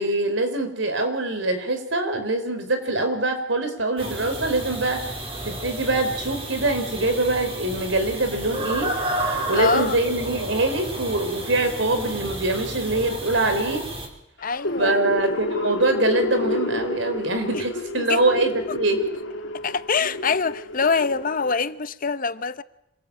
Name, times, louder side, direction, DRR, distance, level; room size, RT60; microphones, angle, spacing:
voice 1, 0.0-5.1 5.4-8.9 9.5-13.8 14.8-19.0, right 2 dB, 75° right, 4.4 m, -24 dB
sound 1, 4.0-14.1, right 1 dB, 30° right, 4.6 m, -31 dB
voice 2, 9.6-10.0 14.4-15.0 18.0-18.2 18.7-18.8 19.6-22.6, left 5 dB, 45° left, 0.9 m, -24 dB
sound 2, 14.4-21.6, left 1 dB, 80° left, 2.3 m, -30 dB
26.0 x 19.0 x 8.8 m
head